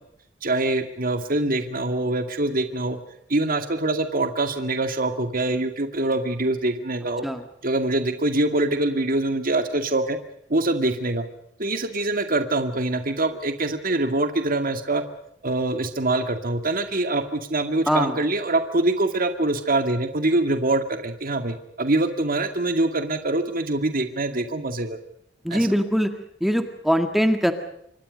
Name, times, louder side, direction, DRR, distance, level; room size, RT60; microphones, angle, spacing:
voice 1, 0.4-3.0 3.3-7.3 7.6-10.2 10.5-11.2 11.6-15.0 15.4-25.0 25.5-25.7, right 2 dB, 50° right, 7 dB, 2.2 m, -24 dB
voice 2, 17.9-18.2 25.4-26.1 26.4-27.5, equal, ahead, 7 dB, 1.9 m, -21 dB
28.0 x 24.5 x 5.3 m, 0.74 s
head